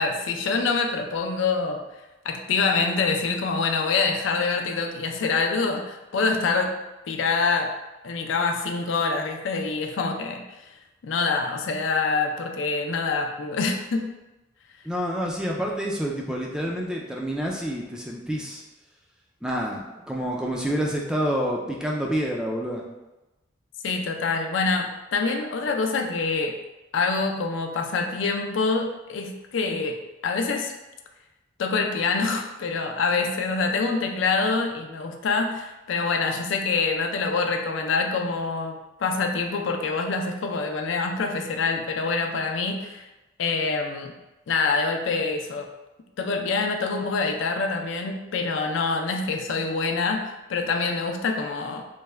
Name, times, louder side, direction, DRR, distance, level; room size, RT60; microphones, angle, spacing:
voice 1, 0.0-1.8 2.2-6.7 7.1-7.7 8.0-10.5 11.0-14.1 23.8-26.5 26.9-30.0 30.2-30.7 31.6-43.0 43.4-44.1 44.5-45.7 46.2-51.8, left 4 dB, 80° left, 4 dB, 0.4 m, -25 dB
voice 2, 14.8-18.6 19.4-22.8, equal, 5° right, -2 dB, 0.3 m, -28 dB
3.2 x 2.1 x 3.3 m, 1.0 s
head